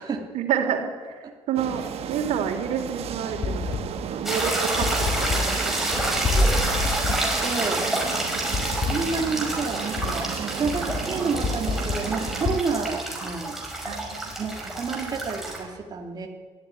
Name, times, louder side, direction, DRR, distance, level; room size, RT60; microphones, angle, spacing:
voice 1, 0.3-6.1 13.8-14.2 14.8-15.2, right 8 dB, 90° right, 5 dB, 3.3 m, -29 dB
sound 1, 1.6-12.6, right 9 dB, 60° right, 1.4 m, -34 dB
sound 2, 3.0-12.6, left 6 dB, 40° left, 1.2 m, -30 dB
sound 3, 4.2-15.6, right 1 dB, ahead, 5.5 m, -28 dB
voice 2, 7.1-7.9 8.8-13.6 14.4-16.3, right 4 dB, 35° right, 1 dB, 2.4 m, -30 dB
22.5 x 14.0 x 9.9 m, 1.5 s
cardioid pair, 150°, 11 cm